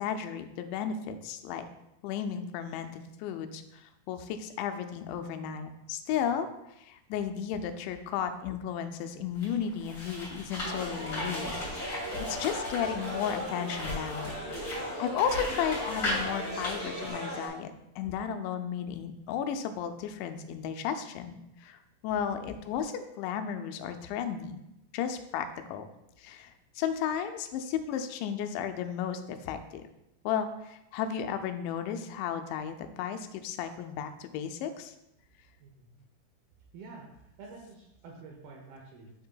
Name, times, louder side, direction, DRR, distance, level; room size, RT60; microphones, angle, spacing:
voice 1, 0.0-1.7 2.0-6.5 6.8-11.9 12.3-14.4 15.0-24.6 24.9-25.9 26.2-29.8 30.3-34.9, left 8 dB, 85° left, 8 dB, 2.8 m, -34 dB
sound 1, 9.3-17.1, left 1 dB, 35° left, 1.6 m, -38 dB
sound 2, 10.6-17.5, equal, 25° right, 1.8 m, -37 dB
voice 2, 35.6-36.0 36.7-39.1, right 3 dB, 80° right, 0 dB, 2.3 m, -49 dB
8.7 x 6.6 x 2.2 m, 0.85 s
omnidirectional pair, 5.2 m